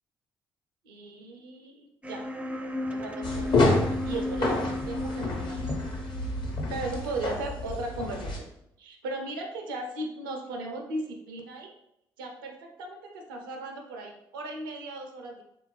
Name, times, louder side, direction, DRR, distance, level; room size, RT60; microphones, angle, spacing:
voice 1, 0.8-2.2 2.9-3.6 3.9-5.6 6.7-8.4 8.8-11.7 12.2-15.4, right 2 dB, 80° right, 2 dB, 0.5 m, -37 dB
sound 1, 2.0-7.9, left 1 dB, 10° right, 0.4 m, -35 dB
sound 2, 3.2-8.4, left 2 dB, 50° left, 0.9 m, -29 dB
3.7 x 2.5 x 3.1 m, 0.79 s
figure-of-eight pair, 40°, 11 cm